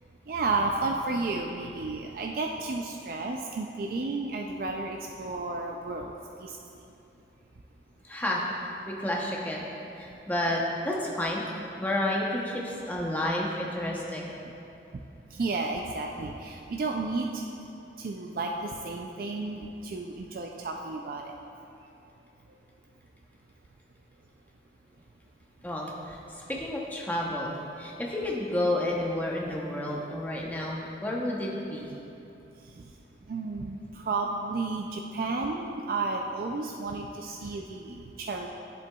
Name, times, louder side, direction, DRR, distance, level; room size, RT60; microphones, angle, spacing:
voice 1, 0.3-6.1 6.4-6.6 15.3-17.4 18.0-21.4 32.8-32.9 33.3-38.5, right 3 dB, 50° right, 1 dB, 0.4 m, -32 dB
voice 2, 8.0-9.7 10.0-11.4 11.8-14.3 25.6-31.9, left 1 dB, 10° left, -3 dB, 0.7 m, -31 dB
10.5 x 7.6 x 2.3 m, 2.9 s
head